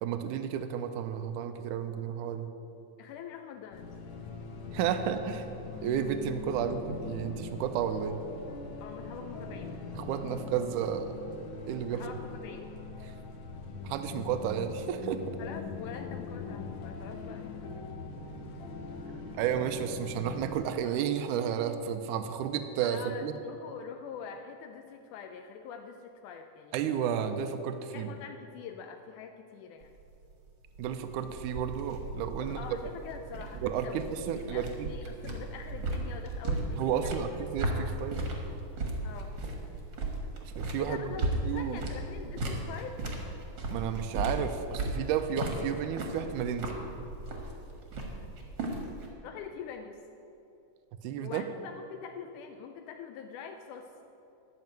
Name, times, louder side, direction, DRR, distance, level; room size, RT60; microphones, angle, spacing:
voice 1, 0.0-2.5 4.7-5.5 5.8-8.2 9.9-11.1 11.7-12.0 13.8-15.4 19.3-23.4 26.7-28.1 30.8-32.6 33.6-34.9 36.8-38.2 40.4-41.2 41.4-41.8 43.7-46.8 51.0-51.5, right 8 dB, 85° right, 9 dB, 2.1 m, -32 dB
voice 2, 3.0-4.0 8.8-9.8 11.9-12.7 15.4-18.1 22.8-26.8 27.9-30.0 32.4-34.0 34.3-37.1 39.0-39.4 40.8-43.1 49.2-50.0 51.2-53.9, left 7 dB, 85° left, 5 dB, 2.1 m, -44 dB
sound 1, 3.7-20.5, left 4 dB, 65° left, 1.2 m, -42 dB
sound 2, 29.8-49.1, right 2 dB, 45° right, 1.7 m, -36 dB
11.0 x 6.4 x 9.1 m, 2.8 s
omnidirectional pair, 3.5 m